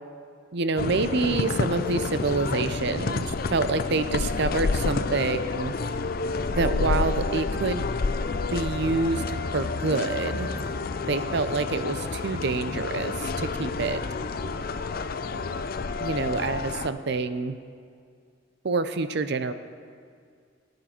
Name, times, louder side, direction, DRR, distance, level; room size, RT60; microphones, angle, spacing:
voice 1, 0.5-5.7 6.5-7.8 8.5-10.5 11.1-14.0 16.0-17.6 18.6-19.5, right 3 dB, 60° right, 11 dB, 0.6 m, -27 dB
sound 1, 0.8-16.9, left 3 dB, 50° left, 0.5 m, -29 dB
18.5 x 9.5 x 4.4 m, 2.2 s
head